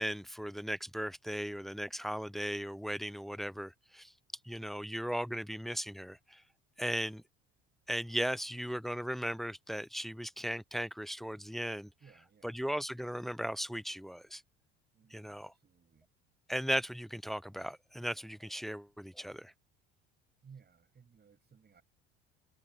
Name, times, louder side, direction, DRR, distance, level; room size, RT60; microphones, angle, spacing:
voice 1, 0.0-4.1 4.4-6.4 6.8-7.2 7.9-11.9 12.4-14.4 15.1-15.5 16.5-19.5, equal, ahead, 0.3 m, -37 dB
voice 2, 12.0-12.7 14.9-16.1 20.4-21.8, right 6 dB, 35° right, 7.2 m, -60 dB
hypercardioid pair, 75°, 30 cm